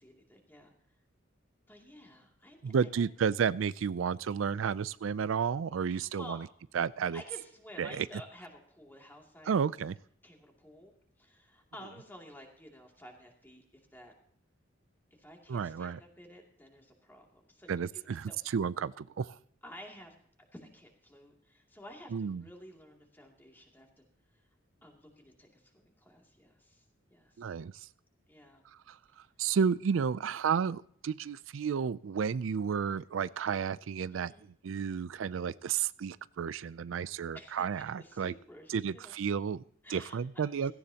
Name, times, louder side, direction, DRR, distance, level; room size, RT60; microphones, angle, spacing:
voice 1, 0.0-0.7 1.7-3.3 5.9-6.4 7.1-9.5 10.2-10.9 11.2-13.6 13.9-14.1 15.2-18.4 19.6-20.1 20.5-24.0 24.8-26.8 27.1-27.3 28.3-28.6 34.1-34.5 37.3-39.2 39.8-40.2 40.6-40.7, equal, 10° left, 1 dB, 2.5 m, -52 dB
voice 2, 2.6-6.5 6.7-7.2 7.8-8.1 9.5-10.0 15.5-16.0 17.7-19.4 22.1-22.4 27.4-27.9 28.9-38.3 38.7-39.6 39.9-40.7, right 6 dB, 85° right, 17 dB, 0.4 m, -32 dB
16.5 x 15.5 x 2.9 m, 0.65 s
head